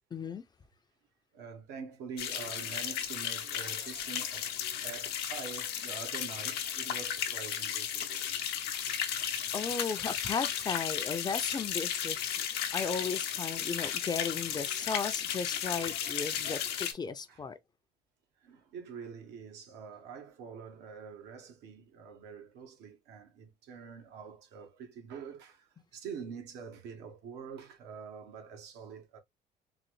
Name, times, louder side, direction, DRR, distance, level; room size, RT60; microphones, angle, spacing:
voice 1, 0.1-0.4 9.5-17.6, left 5 dB, 25° left, 0.4 m, -36 dB
voice 2, 1.3-4.6 4.8-8.4 16.3-16.7 17.3-17.4 18.4-29.2, right 6 dB, 85° right, 0.9 m, -46 dB
sound 1, 2.2-16.9, left 9 dB, 90° left, 0.7 m, -34 dB
3.9 x 2.0 x 3.0 m
cardioid pair, 110°, 17 cm